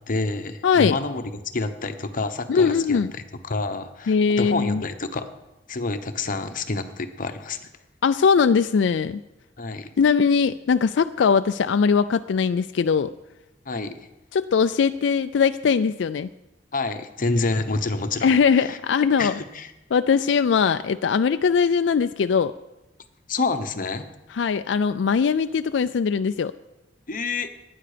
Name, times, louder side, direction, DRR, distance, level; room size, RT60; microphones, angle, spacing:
voice 1, 0.1-5.3 5.7-7.7 9.6-9.9 13.6-14.0 16.7-18.8 19.2-19.7 23.3-24.1 27.1-27.5, left 3 dB, 50° left, 8 dB, 1.0 m, -28 dB
voice 2, 0.6-1.0 2.5-3.1 4.1-4.8 8.0-9.2 10.0-13.1 14.3-16.3 18.2-19.3 19.9-22.5 24.3-26.5, left 6 dB, 80° left, 10 dB, 0.4 m, -20 dB
18.5 x 9.8 x 5.0 m, 1.0 s
head